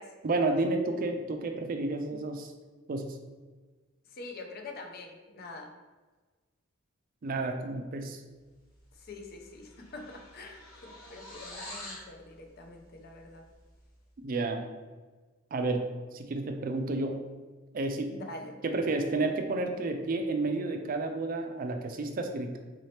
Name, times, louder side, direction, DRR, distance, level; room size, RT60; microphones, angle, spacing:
voice 1, 0.2-2.5 2.9-3.2 7.2-8.2 14.2-14.6 15.5-17.2 17.7-18.1 18.6-22.6, right 2 dB, 45° right, 5 dB, 0.4 m, -31 dB
voice 2, 4.1-5.7 9.0-13.4 18.1-18.6, left 2 dB, 50° left, 3 dB, 0.5 m, -45 dB
sound 1, 8.9-9.1 9.4-12.1, left 1 dB, 75° left, 1.3 m, -46 dB
3.9 x 2.8 x 3.2 m, 1.3 s
head